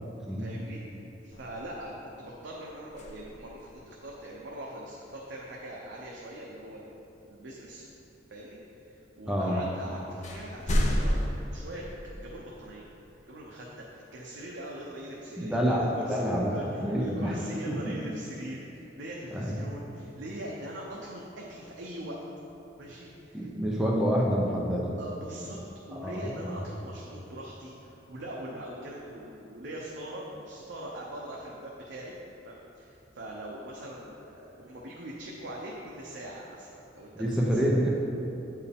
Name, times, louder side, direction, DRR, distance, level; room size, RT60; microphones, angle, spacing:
voice 1, 0.4-7.0 7.3-7.8 8.3-12.9 13.3-22.2 22.8-23.5 25.0-25.6 25.9-32.1 32.4-36.7 36.9-37.9, right 1 dB, 70° right, -3 dB, 0.7 m, -42 dB
sound 1, 1.3-2.1 2.9-3.8 7.3-7.4 9.5-9.6 10.2-11.3, equal, 40° left, 0.6 m, -30 dB
voice 2, 9.3-9.6 15.4-17.3 17.7-17.8 19.3-19.7 23.3-25.0 25.9-26.5 37.1-37.9, equal, 5° right, -4 dB, 0.5 m, -28 dB
8.2 x 4.6 x 3.5 m, 3.0 s
head